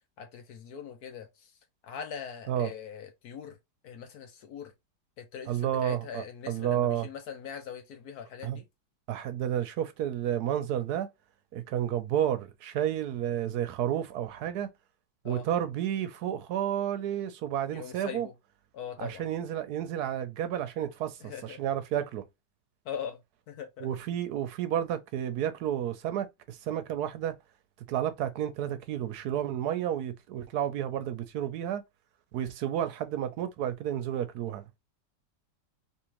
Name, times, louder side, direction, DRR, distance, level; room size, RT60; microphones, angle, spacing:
voice 1, 0.2-1.5 1.8-3.6 3.8-4.7 5.2-8.6 11.8-11.9 15.2-15.5 17.7-18.3 18.7-19.3 21.2-21.6 22.9-23.2 23.5-23.9, left 7 dB, 65° left, 1.1 m, -41 dB
voice 2, 5.5-7.1 8.4-8.6 9.1-11.1 11.5-14.7 15.2-18.3 19.0-22.2 23.8-27.3 27.9-31.8 32.3-34.6, right 10 dB, 70° right, 1.0 m, -31 dB
3.5 x 3.0 x 2.9 m
omnidirectional pair, 1.9 m